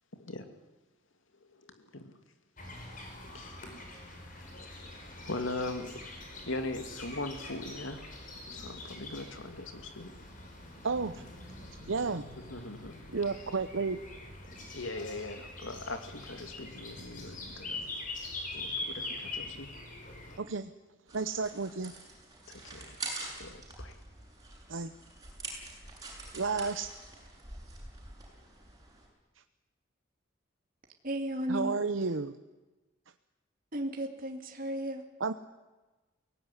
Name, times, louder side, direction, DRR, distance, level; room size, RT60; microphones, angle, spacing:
voice 1, 0.1-0.5 1.5-2.2 3.3-3.7 4.2-4.3 5.2-6.0 6.4-8.1 8.5-10.1 12.4-13.0 14.7-17.9 18.5-19.7 22.5-24.0, left 2 dB, 75° left, 7 dB, 2.5 m, -40 dB
sound 1, 2.6-20.4, left 2 dB, 45° left, 5.4 m, -44 dB
voice 2, 10.8-11.2 11.9-12.2 13.1-14.0 20.4-20.7 21.1-21.9 24.7-24.9 26.3-26.9 31.5-32.4 35.2-35.3, right 4 dB, 75° right, 9 dB, 0.8 m, -32 dB
sound 2, 21.1-29.1, right 3 dB, 20° right, 7.7 m, -45 dB
voice 3, 31.0-31.8 33.7-35.0, right 1 dB, 45° right, 4 dB, 2.4 m, -34 dB
23.0 x 18.0 x 9.9 m, 1.2 s
head